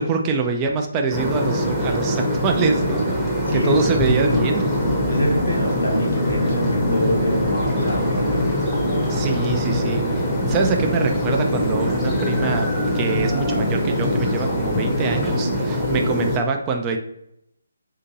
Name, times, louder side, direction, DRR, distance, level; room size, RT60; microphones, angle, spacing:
voice 1, 0.0-4.7 9.1-12.7 12.9-17.0, right 4 dB, 20° right, 3 dB, 0.3 m, -25 dB
sound 1, 1.1-16.4, equal, 5° left, 0.7 m, -23 dB
sound 2, 3.6-15.4, left 3 dB, 50° left, 0.4 m, -28 dB
voice 2, 5.1-8.6 15.7-16.1, left 1 dB, 80° left, -1 dB, 1.3 m, -26 dB
2.8 x 2.6 x 3.9 m, 0.77 s
figure-of-eight pair, 150°, 0 cm